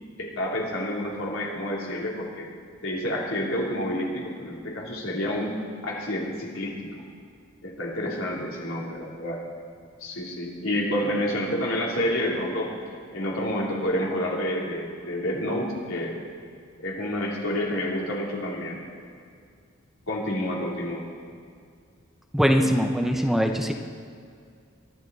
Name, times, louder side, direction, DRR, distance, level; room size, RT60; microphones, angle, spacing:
voice 1, 0.2-2.5 2.8-5.5 5.8-7.0 7.6-9.4 10.0-12.7 13.1-16.2 16.8-18.8 20.1-21.1, left 1 dB, 85° left, -3 dB, 3.3 m, -29 dB
voice 2, 22.3-23.7, equal, ahead, 4 dB, 0.7 m, -22 dB
23.0 x 12.0 x 4.1 m, 2.2 s
head